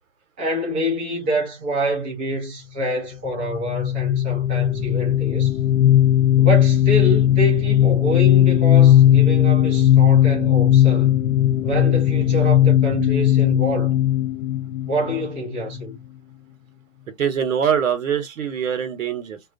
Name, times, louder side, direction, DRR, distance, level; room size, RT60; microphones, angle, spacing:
voice 1, 0.4-5.6 6.4-11.2 11.6-14.0 14.9-16.0, equal, 10° right, 0.4 m, -26 dB
sound 1, 3.4-15.8, left 11 dB, 55° left, 0.6 m, -17 dB
voice 2, 17.1-19.4, right 8 dB, 85° right, 0.9 m, -23 dB
2.3 x 2.1 x 2.5 m
hypercardioid pair, 145°, 38 cm